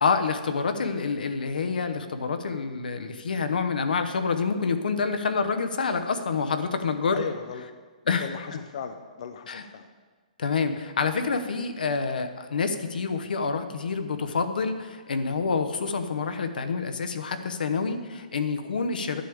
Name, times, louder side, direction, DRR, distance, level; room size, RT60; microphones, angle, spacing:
voice 1, 0.0-7.2 8.1-8.4 9.5-9.6 10.4-19.2, left 5 dB, 85° left, 8 dB, 0.9 m, -27 dB
voice 2, 7.1-7.7 8.0-9.9, left 7 dB, 45° left, 7 dB, 0.5 m, -37 dB
11.5 x 8.4 x 3.5 m, 1.4 s
hypercardioid pair, 170°, 5 cm